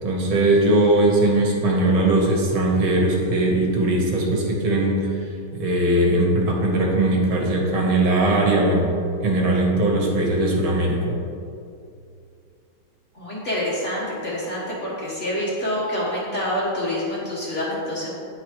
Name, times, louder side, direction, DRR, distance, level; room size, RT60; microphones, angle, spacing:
voice 1, 0.0-5.1 5.5-8.9 9.2-11.2, right 1 dB, 70° right, -1 dB, 1.9 m, -20 dB
voice 2, 13.1-18.1, left 1 dB, 35° left, -7 dB, 1.6 m, -27 dB
9.3 x 4.7 x 4.7 m, 2.5 s
omnidirectional pair, 2.4 m